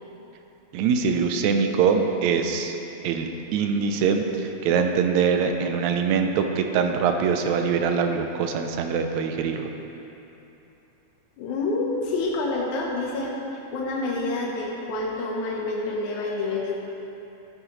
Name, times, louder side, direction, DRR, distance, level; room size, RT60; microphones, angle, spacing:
voice 1, 0.7-2.8 3.0-9.7, right 6 dB, 80° right, 5 dB, 1.9 m, -23 dB
voice 2, 11.4-13.3 13.7-16.7, left 2 dB, 80° left, -2 dB, 2.3 m, -27 dB
12.0 x 9.5 x 3.0 m, 3.0 s
omnidirectional pair, 3.4 m